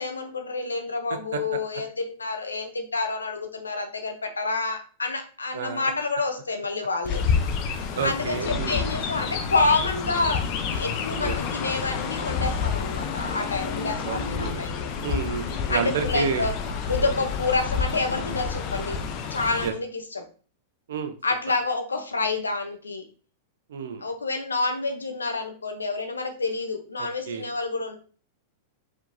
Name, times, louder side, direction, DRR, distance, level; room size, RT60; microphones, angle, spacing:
voice 1, 0.0-7.2 8.0-14.9 15.7-16.5 16.9-19.0 19.3-20.3 21.2-23.0 24.0-28.0, left 3 dB, 90° left, 7 dB, 0.7 m, -28 dB
voice 2, 5.5-5.9 7.9-8.8 11.2-11.4 14.0-14.7 15.0-16.5 19.6-19.7 20.9-21.1 23.7-24.0 27.0-27.5, right 6 dB, 70° right, 8 dB, 0.7 m, -30 dB
Chirp tweet, 7.0-19.7, left 6 dB, 45° left, 0.7 m, -29 dB
4.7 x 3.5 x 2.7 m, 0.40 s
hypercardioid pair, 100°, 0 cm